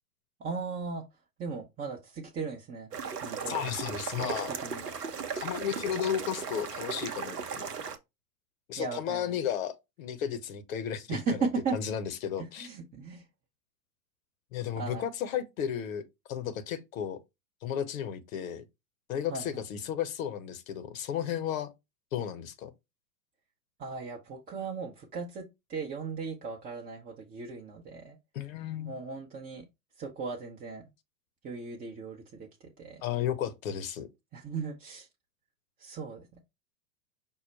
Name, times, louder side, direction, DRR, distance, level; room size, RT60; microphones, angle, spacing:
voice 1, 0.4-1.0 1.4-2.9 3.2-3.6 4.2-4.3 4.6-4.8 8.8-9.4 11.1-11.8 12.4-13.2 14.8-15.0 19.3-19.6 23.8-28.2 28.9-29.7 30.0-30.8 31.4-33.1 34.3-35.1 35.8-36.4, right 4 dB, 20° right, 0.7 m, -37 dB
sound 1, 2.9-8.0, right 6 dB, 85° right, 0.8 m, -36 dB
voice 2, 3.5-4.5 5.3-7.7 8.7-11.4 11.7-12.7 14.5-16.0 16.3-17.2 17.6-18.6 19.1-21.7 22.1-22.7 28.3-28.9 33.0-34.1, left 9 dB, 60° left, 0.8 m, -33 dB
5.5 x 2.1 x 4.4 m
figure-of-eight pair, 95°, 46 cm